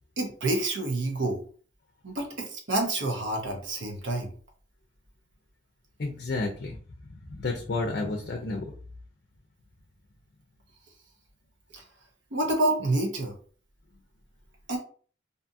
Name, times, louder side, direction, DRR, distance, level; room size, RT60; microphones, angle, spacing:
voice 1, 0.2-1.4 2.0-4.3 11.7-11.8 12.3-13.3 14.7-14.8, right 2 dB, 80° right, 1 dB, 0.8 m, -28 dB
voice 2, 6.0-6.8 7.3-8.7, left 3 dB, 55° left, 2 dB, 0.4 m, -31 dB
2.6 x 2.4 x 2.6 m, 0.42 s
head